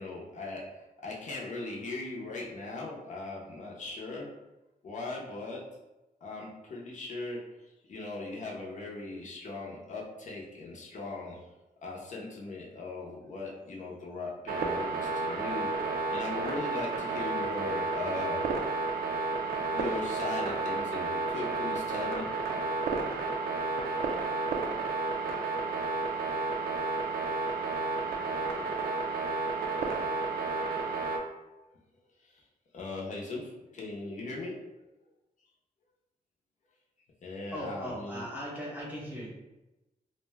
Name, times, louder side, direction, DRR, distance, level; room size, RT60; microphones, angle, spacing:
voice 1, 0.0-4.3 4.8-5.6 6.2-11.4 11.8-18.5 19.7-22.3 32.2-32.4 32.7-34.6 37.2-38.3, left 2 dB, 55° left, -3 dB, 0.6 m, -39 dB
sound 1, 14.5-31.2, right 3 dB, 85° right, 0.5 m, -31 dB
voice 2, 37.5-39.3, equal, 10° right, -5 dB, 0.8 m, -38 dB
2.5 x 2.1 x 3.3 m, 1.0 s
wide cardioid pair, 135°, 15 cm